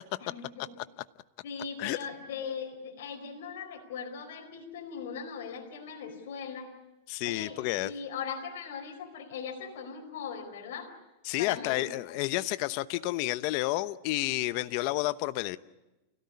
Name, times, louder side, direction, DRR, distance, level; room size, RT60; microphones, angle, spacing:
voice 1, 0.2-0.7 1.4-6.7 7.2-10.9 11.4-12.2, left 6 dB, 70° left, 0 dB, 4.8 m, -40 dB
voice 2, 7.1-7.9 11.2-15.6, left 17 dB, 50° left, 14 dB, 0.9 m, -30 dB
29.0 x 17.5 x 9.7 m, 1.1 s
supercardioid pair, 145°, 0 cm